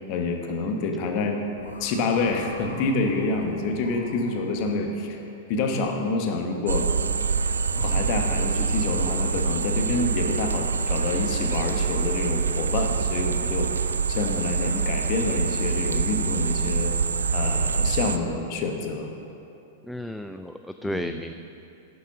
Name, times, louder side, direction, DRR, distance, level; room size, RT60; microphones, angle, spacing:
voice 1, 0.1-1.4 1.8-5.2 5.5-6.9 7.7-16.9 17.3-19.1 20.9-21.2, left 3 dB, 45° left, 3 dB, 1.3 m, -27 dB
sound 1, 1.5-4.8, left 3 dB, 80° left, 1.4 m, -44 dB
sound 2, 6.7-18.2, right 5 dB, 80° right, 0.4 m, -25 dB
voice 2, 19.8-21.3, equal, ahead, 7 dB, 0.3 m, -33 dB
10.0 x 6.8 x 6.0 m, 2.9 s
hypercardioid pair, 100°, 0 cm